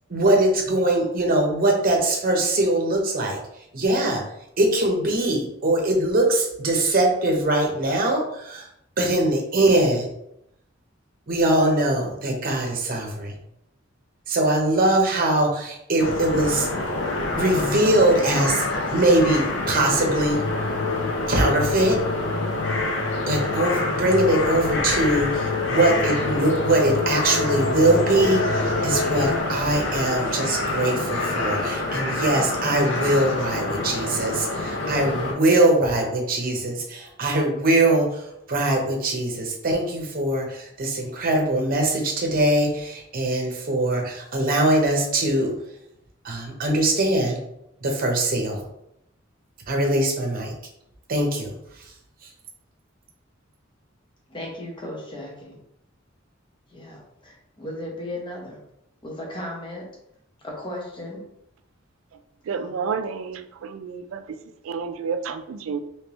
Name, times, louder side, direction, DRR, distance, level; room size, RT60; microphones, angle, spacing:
voice 1, 0.1-3.4 3.7-4.2 4.6-8.7 9.0-10.1 11.3-13.3 14.3-16.7 17.3-18.7 18.9-20.4 21.3-22.0 23.3-45.6 46.2-47.4 47.8-48.6 49.7-50.5 51.1-51.6, right 1 dB, 50° right, 1 dB, 0.8 m, -22 dB
sound 1, 16.0-35.3, left 2 dB, 70° left, 0.7 m, -27 dB
sound 2, 20.3-29.4, left 3 dB, 45° left, 0.4 m, -28 dB
voice 2, 54.3-55.6 56.7-58.6 59.0-59.9 60.4-61.2 62.5-62.9, left 1 dB, 25° left, -2 dB, 1.0 m, -36 dB
voice 3, 62.5-64.4 64.6-65.8, right 5 dB, 85° right, 11 dB, 0.3 m, -30 dB
3.2 x 3.0 x 3.0 m, 0.80 s
head